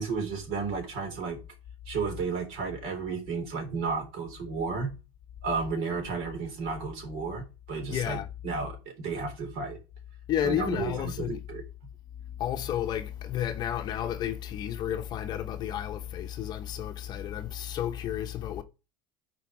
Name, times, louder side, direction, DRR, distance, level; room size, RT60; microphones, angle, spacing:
voice 1, 0.0-1.4 1.9-4.9 5.4-9.8 10.4-11.6, right 5 dB, 55° right, 3.7 m, -33 dB
voice 2, 7.9-8.3 10.3-11.4 12.4-18.6, left 10 dB, 35° left, 0.9 m, -32 dB
10.5 x 4.6 x 5.1 m
supercardioid pair, 145°, 12 cm